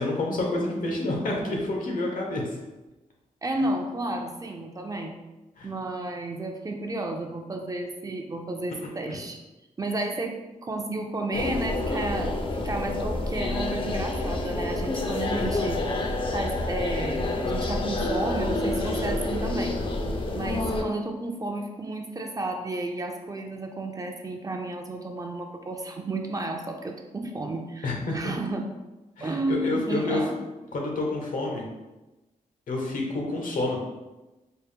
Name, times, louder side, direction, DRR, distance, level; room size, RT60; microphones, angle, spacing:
voice 1, 0.0-2.4 5.6-5.7 9.1-9.2 27.8-28.3 29.2-30.2 30.7-31.7 32.7-33.8, left 2 dB, 75° left, -1 dB, 0.9 m, -28 dB
voice 2, 3.4-5.2 5.6-9.4 9.8-15.8 16.3-19.8 20.3-28.7 29.2-30.4, right 2 dB, 25° right, 3 dB, 0.4 m, -32 dB
sound 1, 11.3-20.8, left 2 dB, 40° left, 0.5 m, -28 dB
4.4 x 2.1 x 3.4 m, 1.1 s
wide cardioid pair, 95°, 14 cm